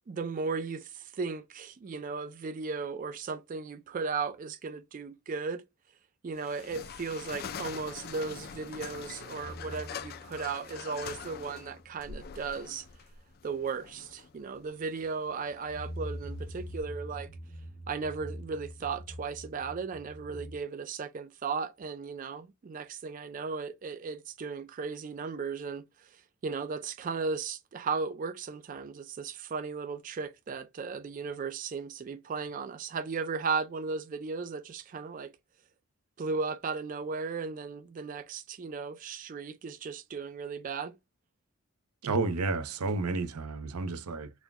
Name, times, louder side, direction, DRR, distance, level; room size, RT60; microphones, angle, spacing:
voice 1, 0.1-5.6 6.2-12.9 13.4-17.3 17.9-35.3 36.2-41.0, right 4 dB, 35° right, 0.3 m, -36 dB
sound 1, 6.3-16.8, left 7 dB, 45° left, 0.4 m, -44 dB
sound 2, 9.4-12.0 12.2-12.6 12.8-13.0 15.5-20.6, equal, 75° left, 1.0 m, -44 dB
voice 2, 42.0-44.3, right 3 dB, 85° right, 0.6 m, -31 dB
4.2 x 2.2 x 3.5 m
head